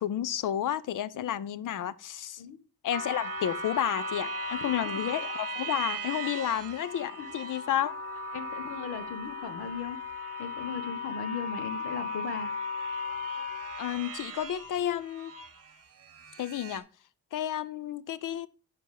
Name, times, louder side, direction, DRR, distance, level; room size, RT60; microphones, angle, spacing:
voice 1, 0.0-2.4 2.8-7.9 13.8-15.3 16.4-16.8 17.3-18.5, left 11 dB, 50° left, 0.5 m, -31 dB
sound 1, 2.9-15.6 16.2-16.8, left 1 dB, 35° right, 1.1 m, -37 dB
voice 2, 8.3-10.0 10.4-12.5, left 6 dB, 70° left, 1.1 m, -38 dB
7.7 x 5.6 x 4.8 m
wide cardioid pair, 170°, 40 cm